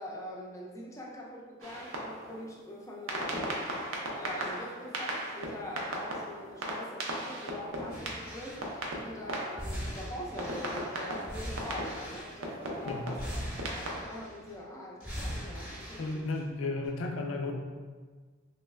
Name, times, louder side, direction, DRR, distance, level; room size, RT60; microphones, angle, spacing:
voice 1, 0.0-3.7 4.1-13.3 13.6-16.1, left 1 dB, 15° left, -3 dB, 0.4 m, -43 dB
sound 1, 1.6-2.5 3.1-10.0 10.4-14.0, right 1 dB, 75° right, 0.5 m, -37 dB
sound 2, 7.9-8.9 9.6-12.6 13.1-14.5 15.0-16.4 16.8-16.9, equal, 5° right, 0.9 m, -41 dB
voice 2, 16.0-17.5, left 3 dB, 90° left, 2 dB, 0.4 m, -34 dB
3.1 x 3.1 x 2.3 m, 1.5 s
head